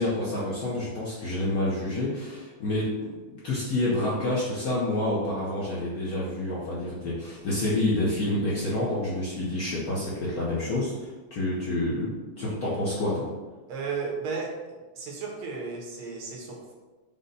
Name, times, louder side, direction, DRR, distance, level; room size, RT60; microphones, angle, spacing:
voice 1, 0.0-12.1 12.4-13.3, left 1 dB, 60° left, -7 dB, 1.0 m, -28 dB
voice 2, 13.7-14.5 15.0-16.7, right 5 dB, 80° right, -1 dB, 1.8 m, -34 dB
5.2 x 2.1 x 3.9 m, 1.2 s
omnidirectional pair, 2.4 m